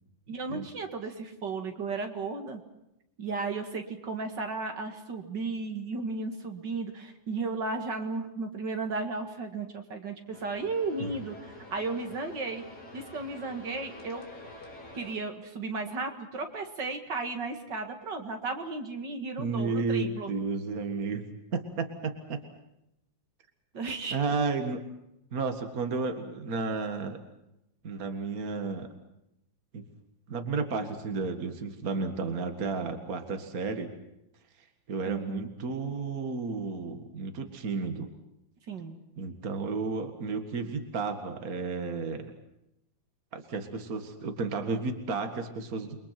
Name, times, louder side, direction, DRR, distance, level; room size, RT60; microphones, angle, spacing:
voice 1, 0.3-2.6 3.2-12.6 12.9-14.3 14.9-20.3 23.7-24.2 35.1-35.5 38.7-39.0, right 3 dB, 65° right, 5 dB, 2.7 m, -34 dB
sound 1, 10.3-15.2, left 1 dB, 55° left, 3.5 m, -47 dB
voice 2, 19.4-21.2 21.5-22.4 24.1-24.8 25.3-27.2 27.8-28.9 29.7-29.8 30.3-33.9 34.9-38.1 39.2-42.3 43.3-46.1, right 4 dB, 50° right, 6 dB, 2.3 m, -32 dB
29.5 x 23.0 x 6.0 m, 0.84 s
omnidirectional pair, 2.1 m